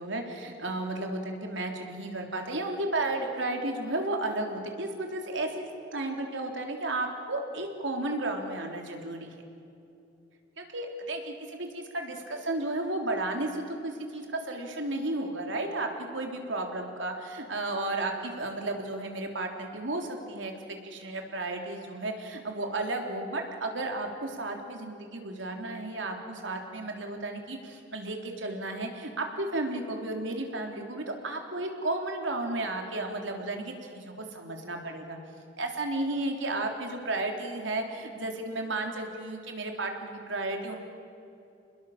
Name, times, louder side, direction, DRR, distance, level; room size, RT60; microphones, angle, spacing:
voice 1, 0.0-9.3 10.6-35.2 35.6-40.8, right 2 dB, 85° right, 3 dB, 3.6 m, -33 dB
29.0 x 20.5 x 7.4 m, 2.7 s
head